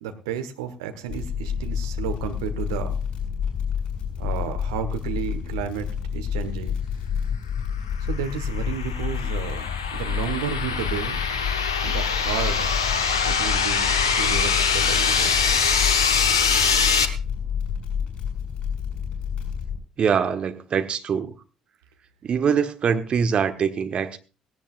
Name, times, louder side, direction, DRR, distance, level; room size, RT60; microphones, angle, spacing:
voice 1, 0.0-3.0 4.2-6.8 8.0-11.2 11.8-12.7 13.2-15.6, right 8 dB, 70° right, 7 dB, 1.4 m, -32 dB
sound 1, 1.1-19.8, left 7 dB, 45° left, 6.1 m, -29 dB
sound 2, 8.1-17.1, left 6 dB, 80° left, 0.9 m, -23 dB
voice 2, 20.0-21.3 22.2-24.2, right 6 dB, 45° right, 8 dB, 1.3 m, -23 dB
17.5 x 17.0 x 2.5 m, 0.33 s
figure-of-eight pair, 45°, 3 cm